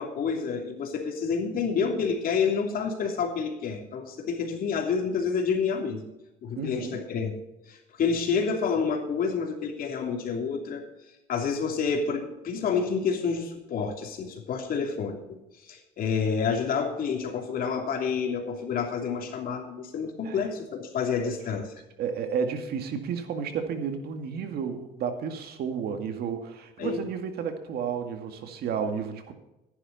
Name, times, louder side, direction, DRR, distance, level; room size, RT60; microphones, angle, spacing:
voice 1, 0.0-6.0 6.4-7.3 7.7-10.8 11.3-21.7 26.8-27.1, left 5 dB, 60° left, 3 dB, 2.9 m, -29 dB
voice 2, 6.6-7.0 20.2-20.4 21.2-21.3 22.0-29.3, right 6 dB, 70° right, 6 dB, 2.0 m, -32 dB
14.5 x 11.0 x 4.2 m, 0.95 s
cardioid pair, 110°, 17 cm